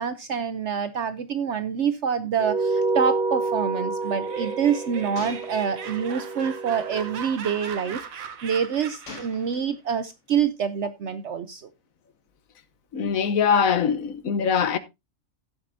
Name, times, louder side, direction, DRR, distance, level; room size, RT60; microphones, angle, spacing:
voice 1, 0.0-11.7, right 7 dB, 60° right, 1.0 m, -26 dB
sound 1, 2.4-7.2, right 3 dB, 40° right, 1.2 m, -29 dB
Gunshot gunfire, 2.8-2.9 3.2-3.3 5.1-6.1 6.9-7.1 9.1-10.0, left 4 dB, 60° left, 1.7 m, -44 dB
Laughter, 4.0-9.5, right 7 dB, 80° right, 1.4 m, -38 dB
voice 2, 12.9-14.8, left 6 dB, 80° left, 1.3 m, -22 dB
16.0 x 7.5 x 2.6 m
omnidirectional pair, 1.4 m